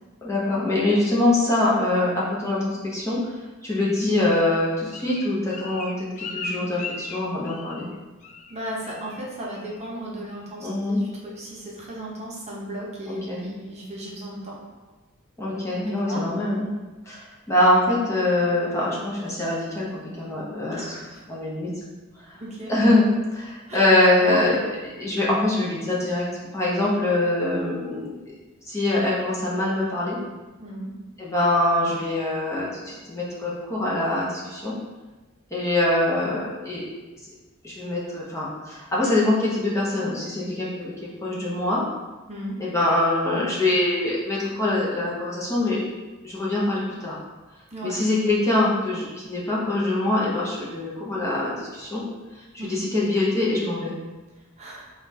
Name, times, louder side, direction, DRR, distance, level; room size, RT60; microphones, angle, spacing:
voice 1, 0.2-3.2 3.6-7.9 10.6-11.0 13.1-13.4 15.4-16.7 17.1-20.8 21.3-21.7 22.7-26.2 26.5-28.1 28.7-30.2 31.2-34.7 35.5-36.8 37.6-40.9 41.2-41.8 42.6-45.8 46.2-47.2 47.8-52.0 52.6-53.9, left 2 dB, 15° left, -6 dB, 0.8 m, -24 dB
Bird, 3.9-7.9 8.2-8.6 8.9-9.2 9.5-9.9 10.3-10.4, left 3 dB, 35° left, 0.4 m, -37 dB
voice 2, 8.5-14.6 16.0-16.2 20.7-21.2 22.3-22.7 23.7-23.8 24.2-24.4 30.6-30.9 42.3-42.6 47.7-48.0 52.6-52.8 54.6-54.8, right 1 dB, 30° right, -4 dB, 0.8 m, -35 dB
5.8 x 2.4 x 2.7 m, 1.2 s
head